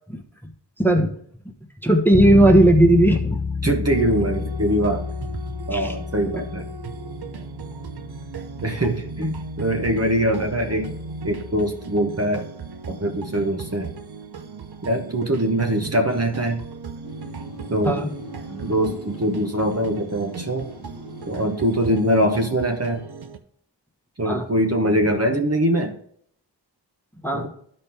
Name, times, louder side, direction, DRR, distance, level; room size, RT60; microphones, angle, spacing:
voice 1, 0.8-1.1 1.8-3.7 5.7-5.9 17.8-18.1 18.5-18.6 24.2-24.4 27.2-27.4, right 1 dB, 5° left, 2 dB, 1.1 m, -17 dB
Bass guitar, 2.1-11.9, left 5 dB, 30° left, 0.4 m, -30 dB
voice 2, 3.6-5.0 5.7-6.7 8.6-11.0 11.2-12.5 12.9-13.9 14.8-16.6 17.7-18.0 18.6-20.7 21.3-23.1 24.2-26.0 27.3-27.5, right 1 dB, 35° right, 3 dB, 0.9 m, -23 dB
sound 1, 3.9-23.4, right 4 dB, 65° right, 0.7 m, -37 dB
sound 2, 17.0-22.3, left 2 dB, 55° left, 1.1 m, -43 dB
12.0 x 4.3 x 3.4 m, 0.63 s
wide cardioid pair, 40°, 42 cm